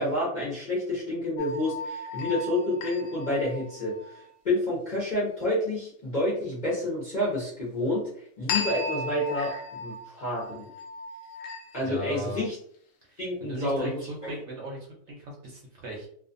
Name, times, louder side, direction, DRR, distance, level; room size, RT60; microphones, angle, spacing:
voice 1, 0.0-10.7 11.7-12.6 13.2-14.3, left 1 dB, 45° left, -6 dB, 0.6 m, -29 dB
sound 1, 1.4-4.2 8.5-12.1, left 3 dB, 70° left, 0.8 m, -35 dB
voice 2, 11.8-12.4 13.1-14.8 15.1-16.1, right 1 dB, 60° right, -2 dB, 0.8 m, -37 dB
2.5 x 2.4 x 2.5 m, 0.62 s
omnidirectional pair, 1.7 m